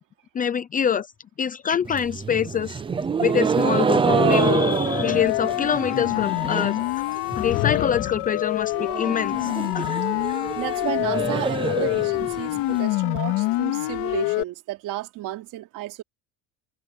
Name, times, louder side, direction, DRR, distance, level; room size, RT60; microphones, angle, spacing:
voice 1, 0.3-1.1 1.4-2.8 3.2-7.1 7.3-9.9, left 8 dB, 20° left, 0.7 m, -25 dB
sound 1, 1.8-6.9 7.2-7.7 8.0-8.1 8.4-8.5 8.8-12.8, right 6 dB, 15° right, 0.6 m, -26 dB
Siren, 4.1-14.4, left 19 dB, 75° left, 2.6 m, -26 dB
sound 2, 7.2-8.4, left 14 dB, 40° left, 2.1 m, -29 dB
voice 2, 10.6-16.0, right 16 dB, 55° right, 3.3 m, -32 dB
cardioid pair, 170°, 37 cm